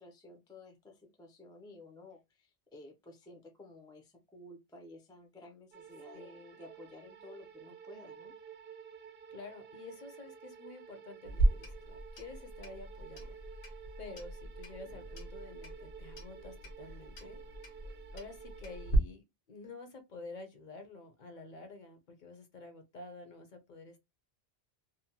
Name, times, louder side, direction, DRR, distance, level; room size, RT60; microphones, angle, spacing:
voice 1, 0.0-8.3, left 2 dB, 5° left, 0.3 m, -54 dB
sound 1, 5.7-18.9, right 7 dB, 70° right, 0.8 m, -52 dB
voice 2, 6.1-6.5 9.3-13.7 14.0-17.4 18.1-24.0, left 3 dB, 55° left, 0.6 m, -50 dB
Clock, 11.2-19.0, right 2 dB, 85° left, 1.1 m, -37 dB
2.7 x 2.1 x 2.7 m
omnidirectional pair, 1.1 m